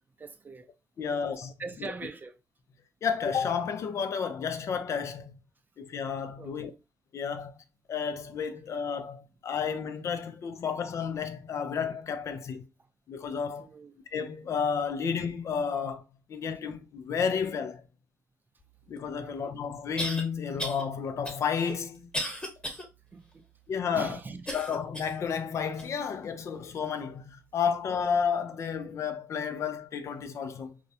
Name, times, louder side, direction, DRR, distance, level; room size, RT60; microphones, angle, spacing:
voice 1, 0.2-0.7 1.0-1.2 1.6-2.3 6.4-6.7 13.6-14.0 19.2-19.5 23.1-23.4 23.9-24.5, right 4 dB, 30° right, 0.5 m, -42 dB
voice 2, 1.0-1.5 1.8-1.9 3.0-5.3 5.8-6.7 7.1-7.5 7.9-12.6 13.1-13.7 14.1-16.0 16.3-17.8 18.9-22.1 23.7-24.2 24.5-30.7, left 6 dB, 55° left, 0.4 m, -31 dB
sound 1, 19.0-19.1 20.0-20.2 20.6-20.8 21.2-22.8 23.3-23.4 24.5-25.2 25.8-25.9 26.7-26.8, equal, 15° left, 1.1 m, -35 dB
2.3 x 2.0 x 2.7 m
supercardioid pair, 65°, 6 cm